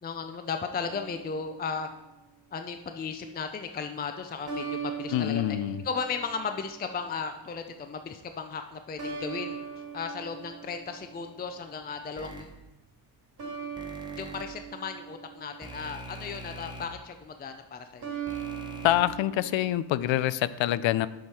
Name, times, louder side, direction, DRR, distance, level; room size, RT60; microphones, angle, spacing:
voice 1, 0.0-1.9 2.5-5.6 5.8-12.5 14.2-18.1, left 5 dB, 20° left, 7 dB, 0.4 m, -35 dB
sound 1, 0.8-2.2 4.5-6.9 9.0-11.6 13.4-15.9 18.0-20.3, right 7 dB, 50° right, 2.0 m, -40 dB
voice 2, 5.1-5.8 18.8-21.1, left 14 dB, 70° left, 17 dB, 0.5 m, -26 dB
sound 2, 12.2-12.4 13.8-14.4 15.6-16.9 18.3-19.0, right 1 dB, 10° right, 1.3 m, -42 dB
7.7 x 6.6 x 4.3 m, 0.99 s
cardioid pair, 105°, 48 cm